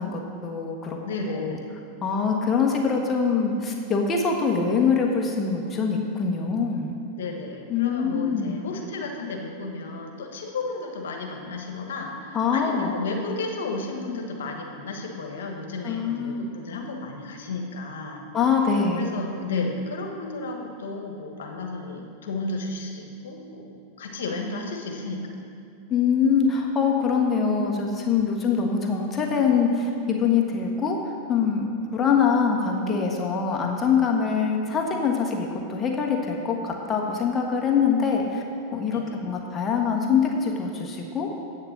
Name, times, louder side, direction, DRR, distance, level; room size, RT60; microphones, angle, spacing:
voice 1, 0.0-1.0 1.3-1.6 2.0-7.0 7.7-8.6 12.3-12.9 15.8-16.5 18.3-19.1 25.9-38.4 38.7-41.4, left 6 dB, 25° left, 0 dB, 1.4 m, -24 dB
voice 2, 1.0-1.7 7.2-18.3 19.0-25.4 38.9-39.2, left 3 dB, 75° left, 2 dB, 1.4 m, -33 dB
8.9 x 6.6 x 7.4 m, 2.4 s
hypercardioid pair, 100°, 0 cm